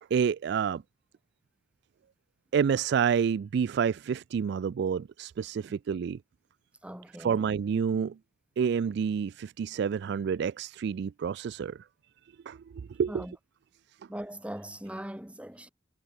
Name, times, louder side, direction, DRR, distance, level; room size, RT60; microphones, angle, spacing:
voice 1, 0.1-0.8 2.5-6.2 7.2-8.1 8.6-11.8 12.5-12.6 13.0-13.3, right 7 dB, 65° right, 0.3 m, -28 dB
voice 2, 6.8-7.5 13.1-13.3 14.1-15.7, right 1 dB, 5° right, 1.2 m, -40 dB
head